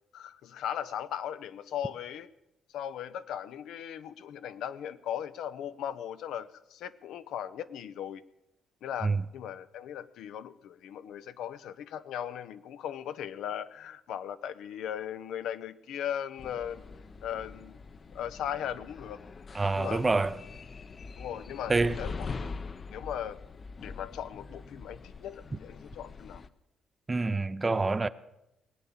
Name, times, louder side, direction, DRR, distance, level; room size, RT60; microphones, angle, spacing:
voice 1, 0.1-2.3 2.7-8.2 8.8-16.8 17.2-17.8 18.1-19.2 19.7-20.0 21.2-22.3 22.9-23.4 23.8-26.4, left 9 dB, 80° left, 0.6 m, -38 dB
sound 1, 16.4-26.5, left 4 dB, 40° left, 0.6 m, -43 dB
voice 2, 19.5-20.4 21.7-22.0 27.1-28.1, right 3 dB, 25° right, 0.6 m, -26 dB
19.5 x 8.6 x 7.2 m
cardioid pair, 90°, 0 cm